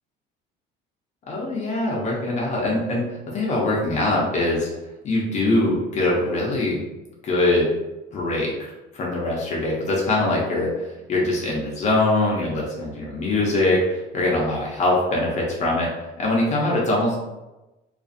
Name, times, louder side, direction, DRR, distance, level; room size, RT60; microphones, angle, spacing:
voice 1, 1.3-3.1 3.3-4.7 5.0-6.8 7.2-7.7 8.1-15.9 16.2-17.2, left 2 dB, 40° left, -3 dB, 0.5 m, -23 dB
2.4 x 2.4 x 2.5 m, 1.1 s
cardioid pair, 135°, 19 cm